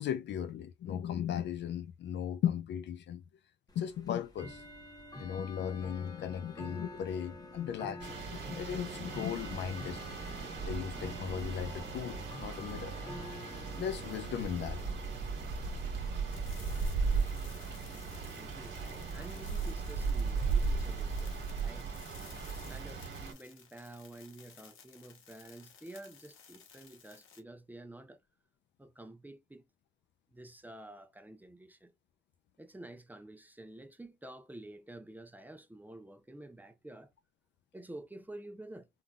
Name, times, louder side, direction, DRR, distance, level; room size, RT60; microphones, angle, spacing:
voice 1, 0.0-3.2 3.8-4.6 5.2-10.2 10.7-13.0 13.8-14.8, left 9 dB, 65° left, 0.4 m, -37 dB
Bell / Tick-tock, 3.7-20.0, left 2 dB, 20° left, 0.8 m, -49 dB
sound 1, 8.0-23.3, right 4 dB, 60° right, 1.4 m, -36 dB
sound 2, 16.3-27.4, left 7 dB, 85° left, 0.9 m, -57 dB
voice 2, 18.0-21.9 22.7-28.2 28.8-29.6 30.3-31.9 32.6-37.1 37.7-38.9, right 1 dB, 10° right, 0.5 m, -50 dB
3.7 x 2.5 x 2.2 m
cardioid pair, 90°, 20 cm